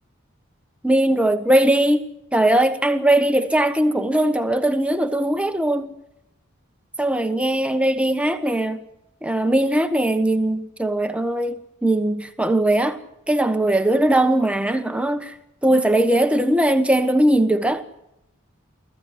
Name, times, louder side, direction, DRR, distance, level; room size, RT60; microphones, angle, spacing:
voice 1, 0.8-2.0 2.3-5.9 7.0-8.8 9.2-13.0 13.3-15.3 15.6-17.8, right 1 dB, 5° right, 1.2 m, -20 dB
18.0 x 15.0 x 9.8 m
head